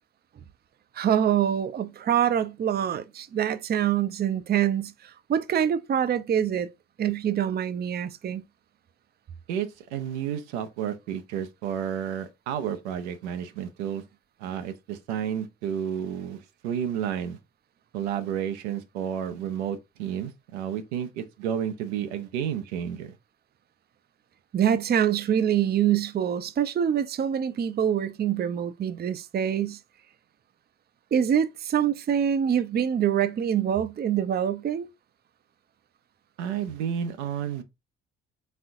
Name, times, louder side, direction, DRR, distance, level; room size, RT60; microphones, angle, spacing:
voice 1, 0.9-6.7 7.0-8.4 24.5-29.8 31.1-34.9, right 9 dB, 30° right, 0.5 m, -25 dB
voice 2, 9.5-14.0 14.4-17.4 17.9-23.2 36.4-37.6, right 9 dB, 80° right, 0.6 m, -31 dB
4.1 x 3.7 x 2.6 m
hypercardioid pair, 45°, 34 cm